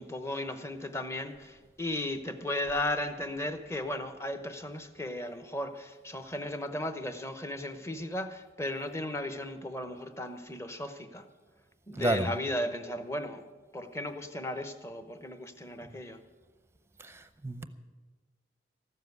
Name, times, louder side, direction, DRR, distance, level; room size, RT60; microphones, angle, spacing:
voice 1, 0.0-11.3 11.9-13.4 13.7-16.2, left 1 dB, 15° left, 8 dB, 0.8 m, -36 dB
voice 2, 11.9-12.3 17.0-17.6, right 1 dB, 15° right, 11 dB, 0.6 m, -30 dB
14.5 x 7.5 x 9.4 m, 1.4 s
head